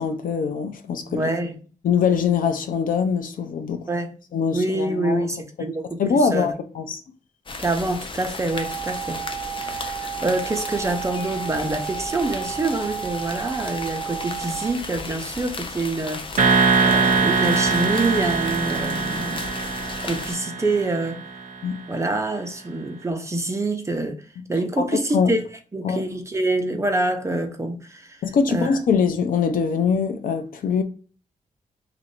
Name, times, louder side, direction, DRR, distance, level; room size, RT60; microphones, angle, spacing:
voice 1, 0.0-1.3 1.8-3.9 4.3-5.2 6.0-7.0 21.6-21.8 24.4-24.5 24.8-24.9 25.1-25.4 25.8-26.0 28.2-30.8, left 6 dB, 90° left, 0.5 m, -23 dB
voice 2, 1.1-1.6 3.9-4.1 4.5-6.5 7.6-16.3 16.8-19.5 20.0-21.2 21.9-25.4 25.7-28.2 28.5-28.7, right 2 dB, 20° right, 0.6 m, -26 dB
sound 1, 7.5-20.4, left 3 dB, 40° left, 0.5 m, -35 dB
sound 2, 8.5-14.7, right 10 dB, 20° left, 0.9 m, -33 dB
sound 3, 16.4-21.3, right 4 dB, 70° right, 0.7 m, -22 dB
3.0 x 2.5 x 4.3 m
wide cardioid pair, 115°, 14 cm